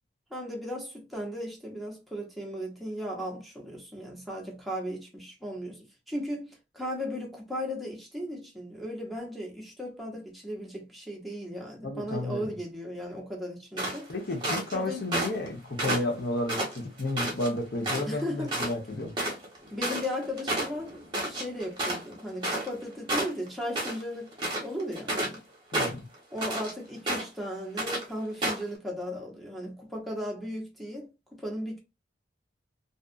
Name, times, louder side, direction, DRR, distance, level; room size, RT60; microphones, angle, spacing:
voice 1, 0.3-14.1 14.7-15.1 18.1-18.5 19.7-25.4 26.3-31.8, equal, ahead, 0.8 m, -36 dB
voice 2, 11.8-12.4 14.1-19.1 25.7-26.1, left 1 dB, 60° left, 0.8 m, -32 dB
sound 1, 13.8-14.7 15.1-15.5 15.8-17.5 17.8-18.2 18.5-18.7 19.0-22.8 23.1-24.0 24.3-25.4 25.7-26.7 27.1-27.4 27.8-28.0 28.4-28.7, right 1 dB, 25° right, 1.0 m, -30 dB
2.6 x 2.4 x 2.4 m
head